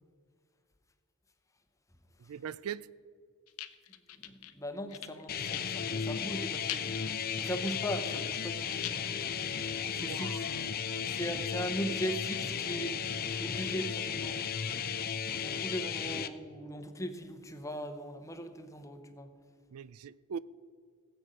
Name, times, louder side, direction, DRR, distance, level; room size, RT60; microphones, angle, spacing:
voice 1, 2.2-2.9 9.9-11.1 19.7-20.4, right 7 dB, 80° right, 0.4 m, -42 dB
sound 1, 3.5-4.5 4.9-6.0 6.3-6.4 6.7-9.0, left 12 dB, 85° left, 0.7 m, -42 dB
voice 2, 4.2-6.9 7.4-8.8 10.0-10.4 11.1-14.4 15.3-19.3, equal, 15° left, 0.9 m, -39 dB
sound 2, 5.3-16.3, left 7 dB, 45° left, 0.6 m, -35 dB
19.0 x 8.1 x 5.0 m
head